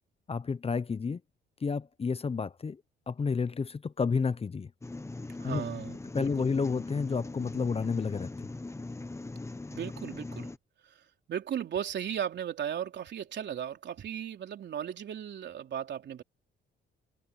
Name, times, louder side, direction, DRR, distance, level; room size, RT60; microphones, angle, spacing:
voice 1, 0.3-1.2 1.6-2.8 3.1-4.7 5.4-5.6 6.1-8.5, left 5 dB, 30° left, 0.9 m, -30 dB
sound 1, 4.8-10.6, left 2 dB, 15° left, 1.2 m, -40 dB
voice 2, 5.4-6.5 9.7-10.5 10.8-16.2, right 9 dB, 65° right, 3.7 m, -36 dB
cardioid pair, 90°, 20 cm